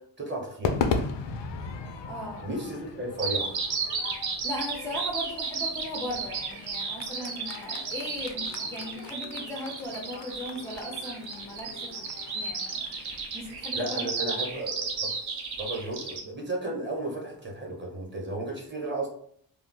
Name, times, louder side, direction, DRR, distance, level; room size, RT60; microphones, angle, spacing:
voice 1, 0.2-0.8 2.4-3.5 13.7-15.1 15.6-19.1, right 1 dB, 25° right, -1 dB, 0.8 m, -34 dB
Crowd / Fireworks, 0.6-15.0, left 5 dB, 75° left, 0.5 m, -37 dB
voice 2, 2.1-2.5 4.4-12.1 12.3-12.8 13.1-14.0, equal, 5° left, -2 dB, 0.4 m, -37 dB
Bird vocalization bird call bird song, 3.2-16.2, right 5 dB, 60° right, 0.7 m, -33 dB
2.3 x 2.2 x 3.7 m, 0.63 s
wide cardioid pair, 110°, 44 cm